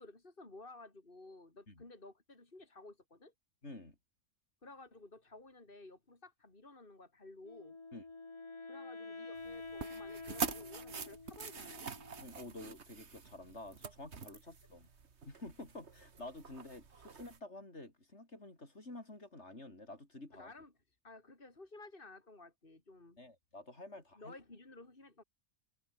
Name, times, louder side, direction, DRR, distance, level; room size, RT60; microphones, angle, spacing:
voice 1, 0.0-3.3 4.6-7.8 8.7-11.9 20.3-20.7 21.0-23.2 24.2-25.2, left 2 dB, 50° left, 3.7 m, -55 dB
voice 2, 3.6-4.0 7.9-8.0 12.2-14.9 15.3-20.5 23.2-24.4, left 2 dB, 70° left, 5.6 m, -50 dB
Wind instrument woodwind instrument, 7.4-12.5, left 3 dB, 25° left, 1.2 m, -48 dB
sound 1, 9.4-17.4, right 5 dB, 70° right, 1.9 m, -45 dB
omnidirectional pair, 1.2 m